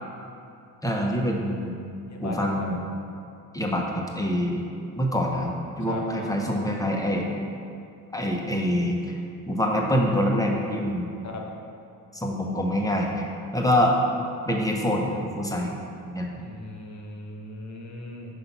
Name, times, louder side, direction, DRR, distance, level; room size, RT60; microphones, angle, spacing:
voice 1, 0.8-1.7 2.2-2.8 3.5-4.6 4.9-7.3 8.1-9.2 9.5-11.1 12.1-13.3 13.5-14.0 14.5-15.8 16.0-16.3, equal, 10° left, 0 dB, 1.0 m, -25 dB
voice 2, 2.1-2.7 5.8-6.3 11.2-11.4 16.3-18.4, left 2 dB, 40° left, 0 dB, 1.2 m, -38 dB
5.8 x 3.8 x 5.7 m, 2.5 s
supercardioid pair, 60°, 44 cm